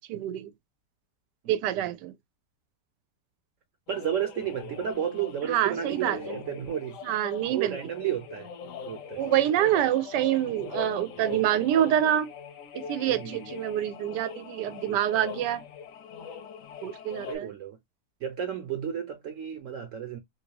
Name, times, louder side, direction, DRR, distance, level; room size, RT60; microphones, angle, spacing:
voice 1, 0.1-0.5 1.5-2.1 5.4-6.4 7.0-7.8 9.2-12.3 12.7-15.6 16.8-17.5, right 11 dB, 90° right, 1.2 m, -26 dB
sound 1, 3.9-17.4, left 6 dB, 65° left, 0.9 m, -42 dB
voice 2, 3.9-7.0 7.5-8.5 8.9-9.2 13.2-13.6 17.3-17.8 18.2-20.2, right 9 dB, 60° right, 0.9 m, -32 dB
3.2 x 2.6 x 2.8 m
omnidirectional pair, 1.8 m